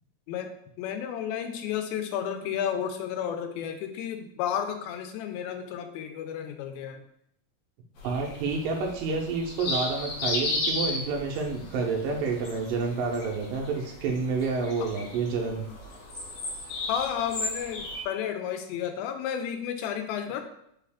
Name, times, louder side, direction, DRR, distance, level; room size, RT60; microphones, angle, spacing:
voice 1, 0.8-7.0 14.8-14.9 16.9-20.4, left 9 dB, 90° left, 6 dB, 2.4 m, -32 dB
sound 1, 8.0-18.0, left 2 dB, 70° left, 1.6 m, -35 dB
voice 2, 8.0-15.6, right 4 dB, 80° right, 1 dB, 2.2 m, -29 dB
5.6 x 2.4 x 3.4 m, 0.73 s
omnidirectional pair, 4.2 m